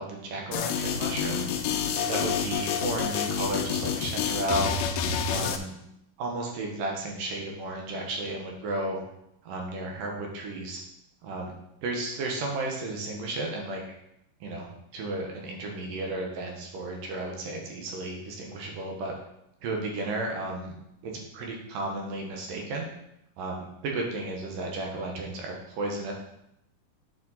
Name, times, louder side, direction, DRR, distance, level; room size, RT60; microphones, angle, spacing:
voice 1, 0.0-1.5 2.1-4.8 5.3-5.7 6.2-9.0 9.5-10.8 11.2-11.5 11.8-13.8 14.4-19.1 19.6-20.7 21.0-22.9 23.4-26.1, right 2 dB, 75° right, 0 dB, 2.9 m, -33 dB
sound 1, 0.5-5.6, left 7 dB, 80° left, 2.1 m, -28 dB
8.8 x 5.3 x 4.1 m, 0.81 s
omnidirectional pair, 3.9 m